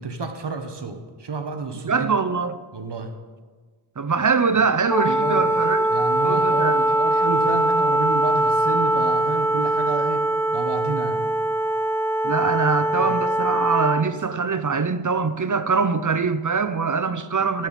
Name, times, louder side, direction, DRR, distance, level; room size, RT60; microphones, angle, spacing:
voice 1, 0.0-2.1 2.7-3.1 5.1-5.5 5.9-10.2 10.5-11.2 13.0-13.1 17.4-17.5, right 4 dB, 55° right, 1.3 m, -30 dB
voice 2, 1.9-2.6 4.0-5.9 6.2-6.8 12.2-17.7, right 5 dB, 40° right, 0.7 m, -23 dB
Wind instrument woodwind instrument, 4.9-14.1, right 1 dB, 5° left, 0.7 m, -22 dB
13.5 x 11.0 x 4.2 m
wide cardioid pair, 65°, 49 cm